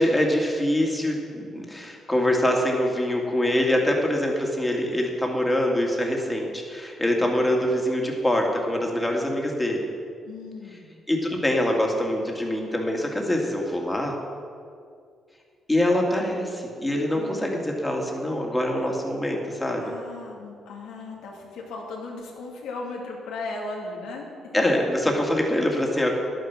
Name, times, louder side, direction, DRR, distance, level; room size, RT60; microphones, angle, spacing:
voice 1, 0.0-9.9 11.1-14.2 15.7-19.8 24.5-26.2, left 1 dB, 10° left, 0 dB, 2.2 m, -24 dB
voice 2, 10.2-10.9 17.1-17.5 19.8-24.3 25.7-25.8, left 3 dB, 90° left, -2 dB, 2.4 m, -37 dB
11.0 x 9.2 x 6.1 m, 2.2 s
cardioid pair, 90°, 0 cm